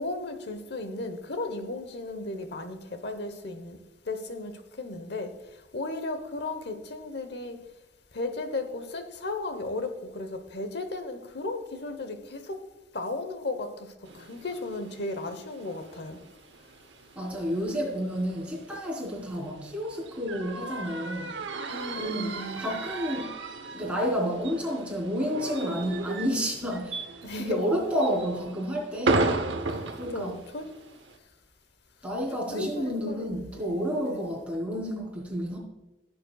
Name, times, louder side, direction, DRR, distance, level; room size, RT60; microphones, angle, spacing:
voice 1, 0.0-3.8 4.1-5.3 5.7-7.6 8.1-12.7 12.9-16.2 21.7-22.6 27.2-27.6 30.1-30.7 32.5-33.8 34.1-34.2, left 2 dB, 70° left, 9 dB, 1.0 m, -35 dB
sound 1, 14.0-31.2, right 3 dB, 85° right, 0.9 m, -35 dB
voice 2, 17.2-21.4 22.0-23.3 23.7-27.0 27.4-29.3 29.9-30.4 32.0-35.6, equal, 5° right, -4 dB, 3.6 m, -30 dB
16.0 x 7.7 x 2.3 m, 1.0 s
head